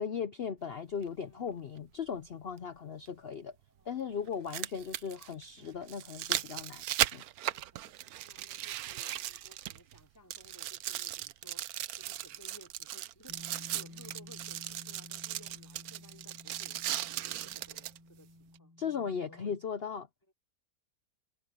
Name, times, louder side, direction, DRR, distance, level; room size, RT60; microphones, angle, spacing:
voice 1, 0.0-3.5 3.9-6.8 7.1-7.2 18.8-20.1, left 7 dB, 60° left, 0.6 m, -37 dB
sound 1, 1.0-1.1 3.1-3.2 4.3-10.0 10.3-18.0 18.6-18.7, right 13 dB, 70° right, 1.0 m, -37 dB
voice 2, 1.2-1.6 3.7-4.6 5.6-6.0 7.5-18.8 19.2-19.6 20.3-20.4, equal, 10° left, 3.7 m, -59 dB
Bass guitar, 13.3-19.5, left 2 dB, 85° left, 8.0 m, -53 dB
omnidirectional pair, 1.8 m